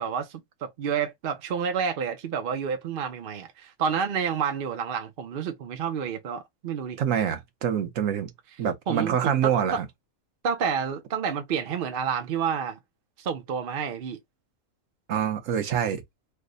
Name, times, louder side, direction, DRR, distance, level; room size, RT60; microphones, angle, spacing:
voice 1, 0.0-7.0 8.9-9.8 10.4-12.8 13.2-14.2, right 7 dB, 55° right, 0.7 m, -29 dB
voice 2, 7.0-8.3 8.6-9.9 15.1-16.0, right 8 dB, 70° right, 1.2 m, -26 dB
3.3 x 2.1 x 3.7 m
omnidirectional pair, 1.4 m